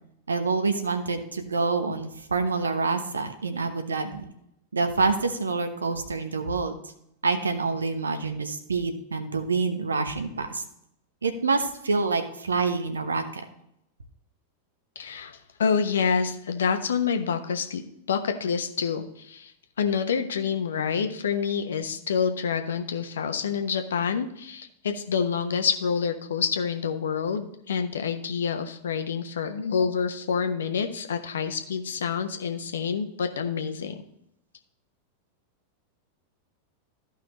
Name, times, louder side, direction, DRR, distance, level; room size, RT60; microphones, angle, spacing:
voice 1, 0.3-4.3 4.7-6.7 7.2-10.6 11.2-13.4, right 4 dB, 75° right, 8 dB, 1.0 m, -27 dB
voice 2, 14.9-17.8 18.1-19.5 19.8-34.0, left 6 dB, 65° left, 7 dB, 1.0 m, -27 dB
14.0 x 5.5 x 3.1 m, 0.78 s
figure-of-eight pair, 90°, 0 cm